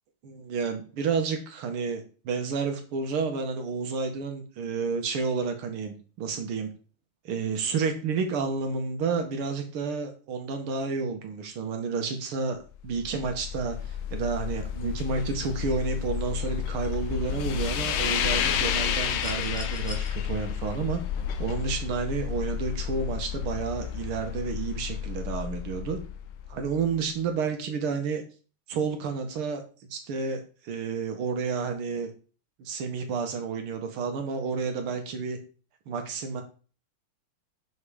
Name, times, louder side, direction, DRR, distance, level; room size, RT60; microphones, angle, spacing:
voice 1, 0.2-6.7 7.3-21.0 21.4-26.0 26.5-28.2 28.7-29.6 29.9-32.1 32.6-35.4 35.9-36.4, right 5 dB, 80° right, 5 dB, 2.1 m, -30 dB
sound 1, 12.8-26.9, left 9 dB, 70° left, 1.4 m, -31 dB
sound 2, 19.1-20.1 21.6-21.7, equal, 5° left, 1.2 m, -42 dB
5.6 x 5.4 x 4.9 m, 0.38 s
omnidirectional pair, 2.4 m